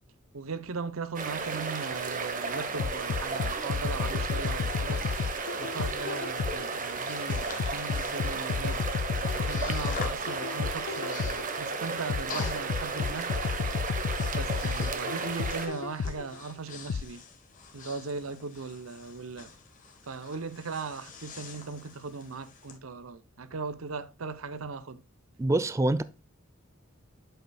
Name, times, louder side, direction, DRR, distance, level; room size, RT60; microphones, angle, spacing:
voice 1, 0.3-5.0 5.6-8.8 9.3-13.3 14.3-17.2 17.7-19.5 20.0-25.0, right 4 dB, 90° right, 0.7 m, -38 dB
sound 1, 1.1-15.7, right 4 dB, 40° right, 1.0 m, -34 dB
sound 2, 2.8-6.8 7.3-11.5 12.1-16.3 16.9-17.0, left 6 dB, 65° left, 0.3 m, -32 dB
Breathing, 4.1-22.8, left 4 dB, 40° left, 1.4 m, -47 dB
voice 2, 25.4-26.0, right 2 dB, 15° right, 0.3 m, -25 dB
7.9 x 6.8 x 2.3 m
head